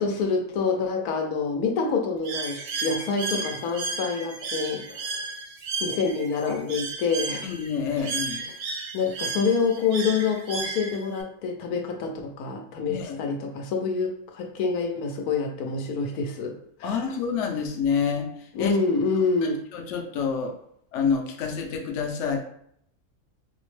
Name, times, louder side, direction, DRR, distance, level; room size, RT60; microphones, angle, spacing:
voice 1, 0.0-5.2 5.8-7.5 8.9-16.5 16.8-17.1 18.5-19.6, left 4 dB, 85° left, 3 dB, 1.1 m, -27 dB
Bird, 2.2-11.2, right 4 dB, 85° right, 0.5 m, -33 dB
voice 2, 7.4-8.4 12.9-13.2 16.8-18.3 18.6-18.7 19.4-20.5 20.9-22.4, left 6 dB, 65° left, 3 dB, 0.8 m, -28 dB
4.2 x 2.0 x 3.1 m, 0.68 s
omnidirectional pair, 1.6 m